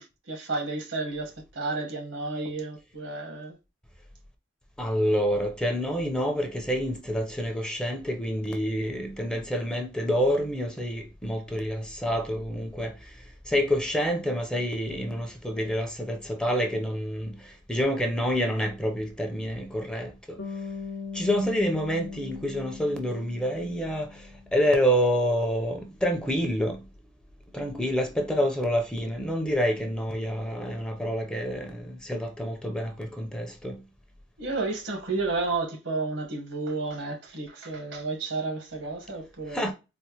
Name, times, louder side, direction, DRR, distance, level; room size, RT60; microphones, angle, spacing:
voice 1, 0.0-3.5 34.4-39.7, right 3 dB, 80° right, 1.2 m, -32 dB
voice 2, 4.8-12.9 13.5-17.3 17.7-20.1 21.1-24.1 24.5-26.8 27.5-33.8 39.5-39.7, equal, 5° left, 0.6 m, -27 dB
Bass guitar, 20.4-24.7, left 5 dB, 75° left, 0.7 m, -39 dB
4.2 x 2.1 x 2.9 m
head